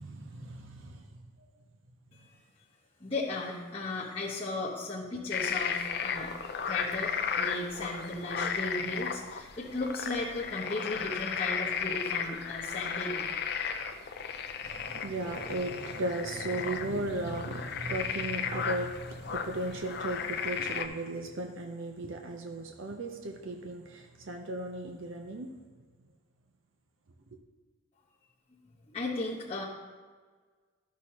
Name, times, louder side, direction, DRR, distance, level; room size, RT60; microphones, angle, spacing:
voice 1, 0.0-1.5 14.6-25.5, right 2 dB, 70° right, 3 dB, 0.7 m, -36 dB
voice 2, 3.0-6.3 6.6-13.3 28.9-29.6, left 2 dB, 30° left, -9 dB, 1.1 m, -36 dB
sound 1, 5.3-20.9, left 6 dB, 50° left, 0.4 m, -35 dB
12.5 x 6.2 x 2.9 m, 1.5 s
head